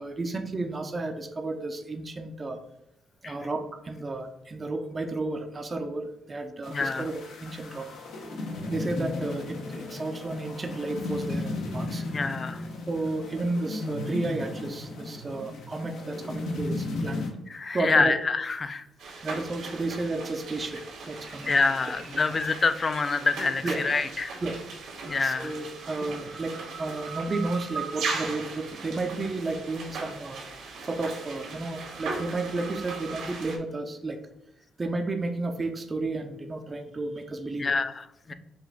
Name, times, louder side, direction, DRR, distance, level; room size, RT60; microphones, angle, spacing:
voice 1, 0.0-2.6 3.2-7.9 8.7-12.0 12.9-17.3 17.7-18.1 19.2-21.5 22.1-22.2 23.6-23.8 24.4-24.6 25.2-30.4 30.8-34.2 34.8-37.7, right 2 dB, 30° right, 6 dB, 0.5 m, -32 dB
sound 1, 6.6-17.3, left 2 dB, 75° left, 1.0 m, -35 dB
voice 2, 6.7-7.1 12.1-12.6 17.5-18.8 21.5-24.4 25.1-25.5 37.6-38.3, left 4 dB, 35° left, 11 dB, 0.4 m, -26 dB
sound 2, 19.0-33.6, right 4 dB, 80° right, 1.4 m, -38 dB
5.1 x 2.5 x 3.7 m, 0.83 s
cardioid pair, 90°, 0 cm